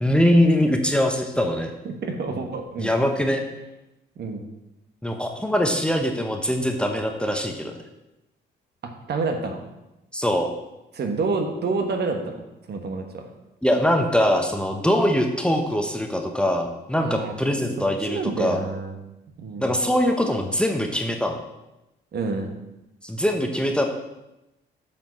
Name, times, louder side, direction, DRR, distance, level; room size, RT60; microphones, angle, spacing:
voice 1, 0.0-1.7 2.8-3.4 5.0-7.7 10.1-10.5 13.6-18.6 19.6-21.4 23.0-23.8, equal, 5° left, 3 dB, 1.0 m, -22 dB
voice 2, 1.8-2.9 4.2-4.5 9.1-9.6 10.9-12.4 12.7-13.3 17.0-17.3 18.1-19.0 19.4-19.7 22.1-22.6, right 3 dB, 55° right, 4 dB, 1.4 m, -28 dB
7.4 x 5.2 x 6.3 m, 0.94 s
cardioid pair, 90°, 20 cm